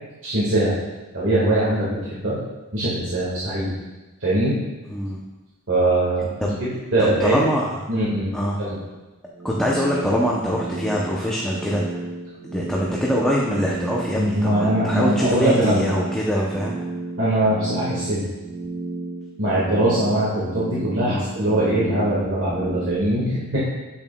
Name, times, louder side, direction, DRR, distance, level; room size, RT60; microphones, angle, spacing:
voice 1, 0.2-0.7 1.1-2.4 2.7-3.7 4.2-4.6 5.7-7.4 7.9-8.3 8.6-8.8 14.1-15.8 17.2-18.2 19.4-23.6, right 1 dB, 60° right, -9 dB, 1.7 m, -21 dB
voice 2, 4.9-5.2 6.4-6.5 7.0-7.7 8.3-8.6 9.4-11.8 12.4-16.7 21.1-21.3, equal, 5° left, -4 dB, 0.6 m, -23 dB
sound 1, 9.3-23.0, right 3 dB, 25° right, 1.1 m, -33 dB
8.2 x 7.2 x 2.2 m, 1.1 s
head